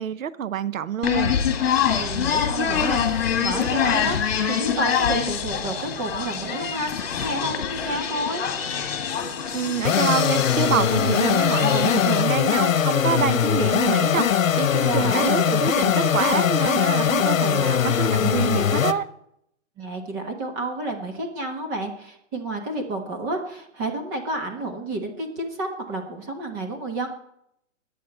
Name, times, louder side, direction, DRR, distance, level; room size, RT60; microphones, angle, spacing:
voice 1, 0.0-1.4 9.5-19.1, right 8 dB, 85° right, 0.8 m, -26 dB
sound 1, 1.0-12.2, left 8 dB, 50° left, 2.0 m, -25 dB
voice 2, 2.0-4.2 4.5-8.4 14.8-15.3 19.8-27.1, right 2 dB, 15° right, 1.3 m, -30 dB
sound 2, 9.8-18.9, left 8 dB, 80° left, 1.0 m, -21 dB
21.0 x 8.6 x 4.3 m
hypercardioid pair, 170°, 39 cm